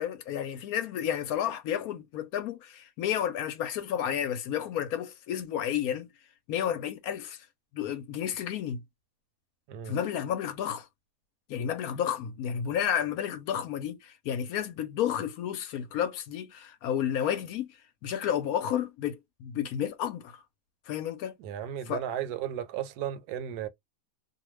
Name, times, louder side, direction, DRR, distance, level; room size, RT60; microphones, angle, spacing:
voice 1, 0.0-6.1 6.5-7.4 7.7-8.8 9.9-10.9 11.5-17.7 18.0-20.4 20.9-21.3 21.9-22.0, left 9 dB, 70° left, 1.0 m, -31 dB
voice 2, 21.4-23.7, right 10 dB, 75° right, 1.1 m, -34 dB
2.6 x 2.2 x 3.0 m
omnidirectional pair, 1.7 m